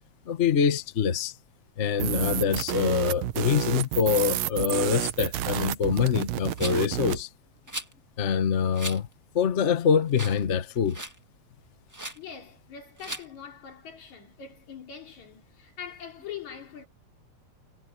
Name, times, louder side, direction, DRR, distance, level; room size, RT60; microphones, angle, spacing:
voice 1, 0.3-1.3 1.8-7.3 8.2-9.1 9.3-11.0, left 7 dB, 50° left, 0.8 m, -25 dB
sound 1, 2.0-7.2, right 14 dB, 70° right, 1.8 m, -30 dB
Rattle, 6.6-6.9 7.7-7.9 8.7-9.0 9.5-9.6 10.1-10.5 10.7-11.2 11.9-12.2 13.0-13.3, right 1 dB, 10° right, 1.2 m, -37 dB
voice 2, 12.2-16.9, left 7 dB, 75° left, 4.6 m, -43 dB
omnidirectional pair, 3.3 m